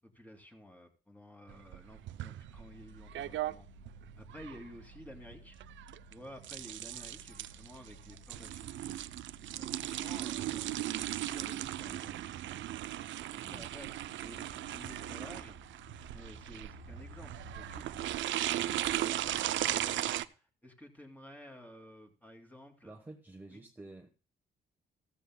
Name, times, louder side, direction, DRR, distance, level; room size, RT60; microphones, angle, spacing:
voice 1, 0.0-3.7 4.2-5.6 6.1-9.0 9.5-10.8 11.3-12.7 13.3-13.9 14.2-15.6 16.1-22.9 23.5-23.6, left 1 dB, 10° left, 2 dB, 2.6 m, -53 dB
sound 1, 1.5-20.2, right 13 dB, 70° right, 0.5 m, -37 dB
sound 2, 2.4-18.1, left 2 dB, 60° left, 6.5 m, -57 dB
voice 2, 22.8-24.2, right 2 dB, 10° right, 4 dB, 1.2 m, -50 dB
15.0 x 14.0 x 2.2 m, 0.36 s
cardioid pair, 90°, 20 cm